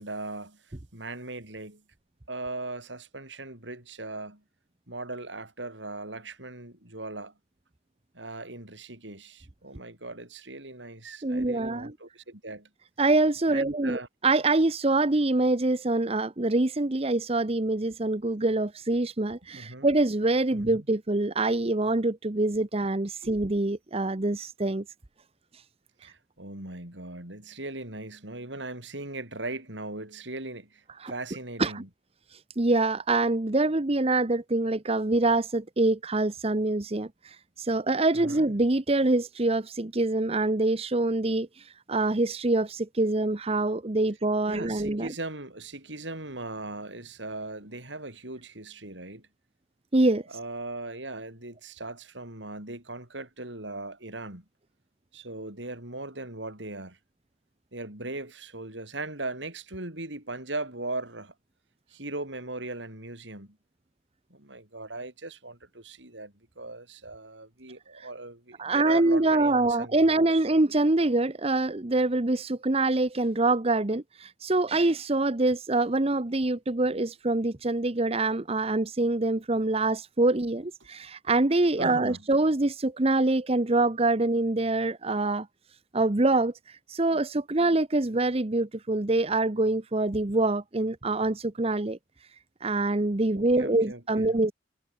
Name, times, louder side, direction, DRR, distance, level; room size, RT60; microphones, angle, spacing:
voice 1, 0.0-1.8 2.3-4.4 4.9-7.3 8.1-12.7 13.5-14.1 19.5-19.9 20.5-20.9 23.2-23.3 26.0-31.9 38.1-38.4 44.5-49.3 50.3-54.4 55.1-57.0 57.7-61.3 61.9-63.6 64.3-70.4 81.8-82.2 93.3-94.4, right 2 dB, 85° right, 7.5 m, -39 dB
voice 2, 11.2-11.9 13.0-24.8 26.0-26.1 31.0-31.1 31.6-31.8 32.6-45.1 49.9-50.2 68.0-68.1 68.6-85.5 85.9-92.0 92.6-94.5, right 2 dB, 35° right, 1.0 m, -25 dB
head